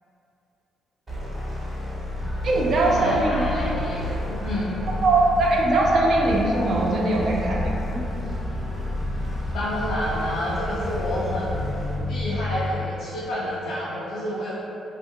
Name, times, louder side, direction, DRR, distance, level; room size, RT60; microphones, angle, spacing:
sound 1, 1.1-12.1, left 1 dB, 30° right, 1.1 m, -32 dB
sound 2, 2.1-12.7, left 1 dB, 5° left, 0.5 m, -33 dB
voice 1, 2.4-3.4 5.0-8.0, right 2 dB, 60° right, -2 dB, 0.4 m, -21 dB
voice 2, 3.0-4.7 9.5-14.5, equal, 90° left, -8 dB, 0.4 m, -29 dB
2.8 x 2.4 x 2.6 m, 2.9 s
cardioid pair, 90°, 0 cm